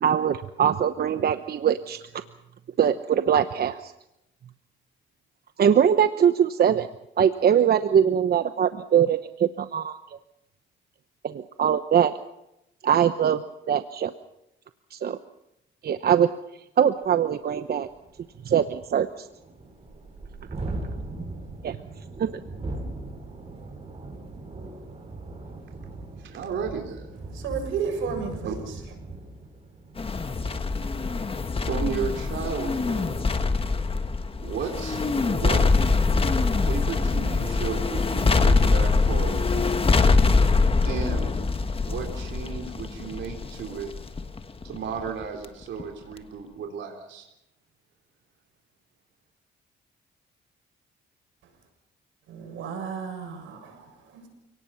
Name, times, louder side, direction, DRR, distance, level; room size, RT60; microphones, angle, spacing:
voice 1, 0.0-2.0 2.8-3.9 5.6-6.9 7.2-10.2 11.2-12.1 12.8-13.4 13.7-14.1 14.9-15.2 15.8-16.3 16.8-17.9 18.4-19.3 21.6-21.8 22.2-22.3, right 8 dB, 50° right, 10 dB, 0.9 m, -22 dB
Thunderstorm, 17.0-17.1 17.5-17.6 17.9-31.5, right 2 dB, 30° right, 7.6 m, -39 dB
voice 2, 26.2-27.0 28.4-28.5 31.6-33.3 34.4-35.0 35.3-35.6 36.6-40.2 40.9-41.4 41.8-43.9 44.6-47.2, right 6 dB, 70° right, 1 dB, 3.6 m, -34 dB
voice 3, 27.3-28.8 51.4-51.5 52.3-54.3, right 6 dB, 85° right, 4 dB, 7.1 m, -33 dB
sound 1, 30.0-45.4 45.8-45.9, left 4 dB, 30° left, 1.6 m, -23 dB
29.5 x 18.5 x 5.7 m, 0.86 s
cardioid pair, 90°, 20 cm